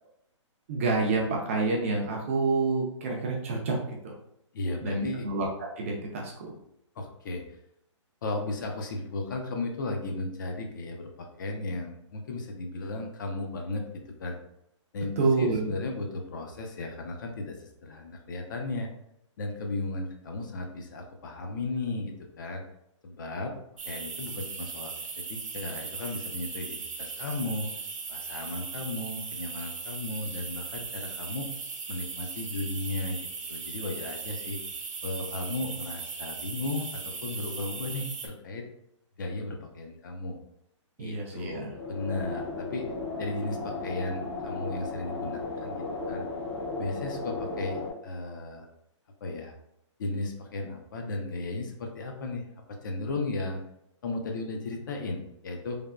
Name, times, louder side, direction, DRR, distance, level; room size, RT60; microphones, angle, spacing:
voice 1, 0.7-3.8 4.0-4.1 4.8-5.5 5.8-6.5 15.2-15.7 41.0-41.7, right 3 dB, 25° right, -1 dB, 0.4 m, -28 dB
voice 2, 4.5-5.3 7.0-7.4 8.2-14.4 14.9-18.9 19.4-22.6 23.0-23.5 23.9-27.7 28.1-31.5 31.9-33.2 33.5-34.6 35.0-38.6 39.2-40.4 41.0-42.8 43.2-46.2 46.8-48.7 49.2-49.5 50.0-52.5 52.8-53.6 54.0-55.8, left 2 dB, 40° left, 3 dB, 0.4 m, -35 dB
sound 1, 23.8-38.3, right 5 dB, 85° right, 0.6 m, -38 dB
sound 2, 41.7-47.9, left 3 dB, 60° left, 0.9 m, -35 dB
3.2 x 2.0 x 2.4 m, 0.77 s
hypercardioid pair, 160°, 16 cm